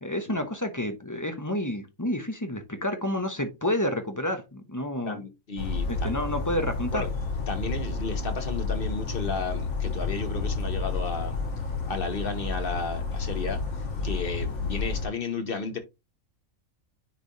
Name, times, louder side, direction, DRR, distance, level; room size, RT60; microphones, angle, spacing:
voice 1, 0.0-5.2 5.9-7.0, left 1 dB, 15° left, 0.9 m, -29 dB
voice 2, 5.0-6.2 6.9-7.2 7.5-11.4 11.9-13.6 14.0-15.8, left 4 dB, 40° left, 1.2 m, -33 dB
Bird vocalization bird call bird song, 5.6-15.1, left 4 dB, 65° left, 2.0 m, -30 dB
10.0 x 3.4 x 2.7 m
omnidirectional pair, 1.5 m